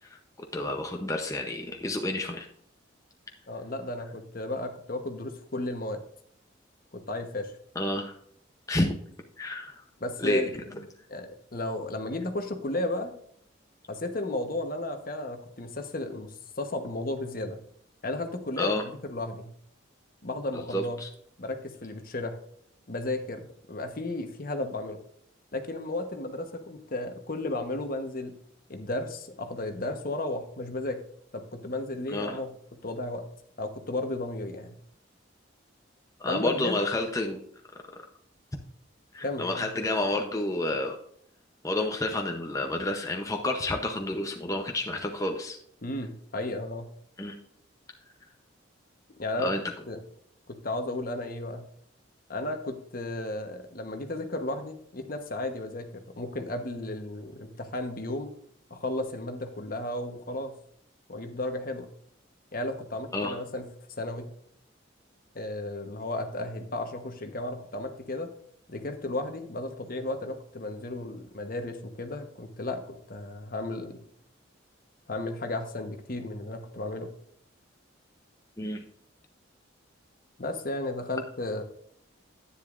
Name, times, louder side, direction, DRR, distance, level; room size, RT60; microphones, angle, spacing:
voice 1, 0.5-2.5 7.8-8.1 8.7-8.9 9.4-9.8 10.2-10.4 18.6-18.8 20.5-21.1 32.1-32.4 36.2-37.4 39.1-41.0 41.6-45.6 47.2-47.4 49.4-49.6 63.1-63.4 78.6-78.8, left 1 dB, 15° left, 2 dB, 0.7 m, -29 dB
voice 2, 3.5-6.0 6.9-7.5 10.0-10.6 11.1-13.1 13.9-17.6 18.0-19.5 20.2-21.0 21.4-22.4 22.9-25.0 25.5-28.3 28.7-31.0 31.3-32.5 32.8-33.2 33.6-34.8 36.2-36.8 39.2-39.7 45.8-46.9 49.2-49.5 49.9-50.0 50.5-51.7 52.3-58.3 58.7-60.6 61.1-61.9 62.5-63.7 64.0-64.3 65.3-68.3 68.7-74.0 75.1-77.1 80.4-81.6, left 2 dB, 45° left, 6 dB, 1.1 m, -34 dB
10.5 x 9.8 x 2.5 m, 0.67 s
head